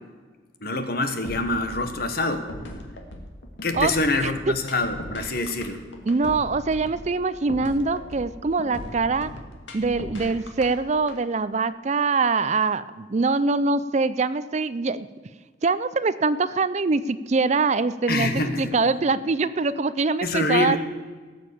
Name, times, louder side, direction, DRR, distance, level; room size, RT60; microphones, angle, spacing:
voice 1, 0.6-2.5 3.6-5.8 18.1-18.7 20.2-20.8, left 2 dB, 50° left, 8 dB, 1.4 m, -25 dB
sound 1, 1.2-11.2, left 1 dB, 70° left, 2.3 m, -38 dB
voice 2, 6.1-9.3 9.7-15.1 15.6-18.3 18.6-20.8, right 4 dB, 35° right, 15 dB, 0.4 m, -23 dB
18.0 x 7.1 x 8.4 m, 1.4 s
head